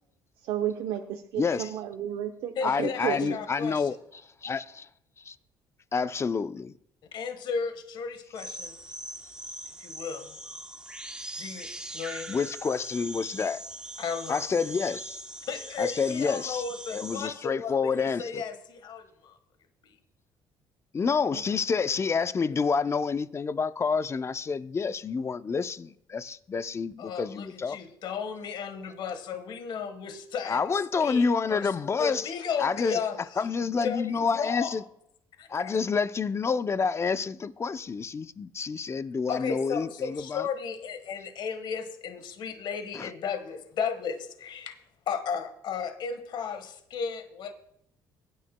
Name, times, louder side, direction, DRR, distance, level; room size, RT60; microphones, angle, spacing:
voice 1, 0.4-3.4, right 10 dB, 80° right, 0.8 m, -32 dB
voice 2, 1.4-1.7 2.6-4.0 4.4-4.9 5.3-5.4 5.9-6.7 12.3-13.6 14.3-15.2 15.8-16.6 16.9-18.4 20.9-27.8 30.4-32.3 32.6-33.0 33.4-34.8 35.5-40.5 42.9-43.1, left 5 dB, 30° left, 0.6 m, -28 dB
voice 3, 2.6-4.0 7.1-8.8 9.8-10.4 11.4-11.7 11.9-12.5 14.0-14.4 15.5-19.4 19.8-19.9 27.0-30.7 31.0-31.7 32.0-33.2 33.8-34.8 35.4-35.8 39.3-44.8 45.1-47.5, left 6 dB, 65° left, 1.4 m, -34 dB
sound 1, 8.4-17.3, right 1 dB, 10° right, 1.0 m, -41 dB
22.0 x 9.9 x 2.2 m
cardioid pair, 85°, 9 cm